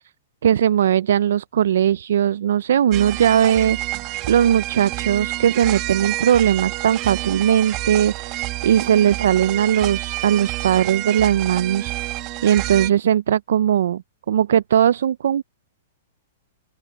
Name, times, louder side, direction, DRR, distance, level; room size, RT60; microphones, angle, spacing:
voice 1, 0.4-3.8 4.3-11.9 12.4-14.0 14.3-15.4, right 9 dB, 75° right, 0.3 m, -19 dB
sound 1, 2.9-12.9, right 18 dB, 30° right, 1.0 m, -28 dB
open air
hypercardioid pair, 165°, 0 cm